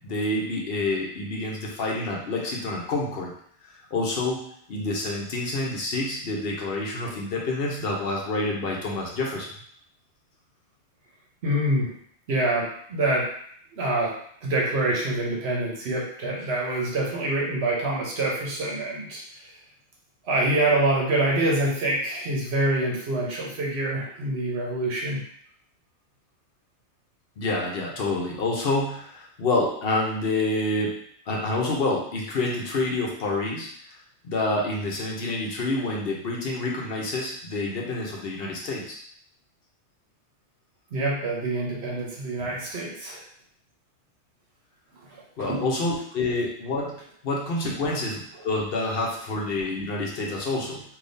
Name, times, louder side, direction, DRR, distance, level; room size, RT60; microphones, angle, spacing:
voice 1, 0.0-3.3 3.9-4.4 4.7-9.5 27.4-31.0 31.3-33.7 34.2-39.0 45.4-47.0 47.2-50.8, left 2 dB, 65° left, -2 dB, 0.9 m, -28 dB
voice 2, 11.4-11.9 12.3-13.3 13.7-14.1 14.4-19.5 20.2-25.2 40.9-43.2 44.9-45.6 48.3-48.4, right 2 dB, 75° right, -3 dB, 1.1 m, -26 dB
3.5 x 2.7 x 2.6 m, 0.63 s
omnidirectional pair, 1.1 m